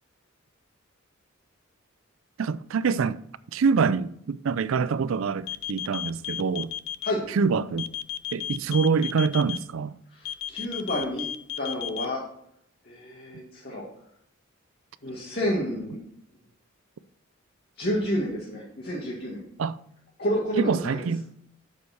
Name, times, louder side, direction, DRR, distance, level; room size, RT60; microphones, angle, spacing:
voice 1, 2.4-3.2 3.5-6.7 7.3-7.9 8.3-10.0 19.6-19.8 20.6-21.3, right 5 dB, 75° right, 0.4 m, -25 dB
sound 1, 5.4-7.1 7.8-9.6 10.3-12.1, left 11 dB, 85° left, 0.4 m, -33 dB
voice 2, 10.1-11.3 11.6-12.2 12.8-13.8 15.0-16.0 17.8-19.4 20.2-21.1, equal, 50° left, 2.1 m, -29 dB
8.4 x 6.6 x 4.4 m
head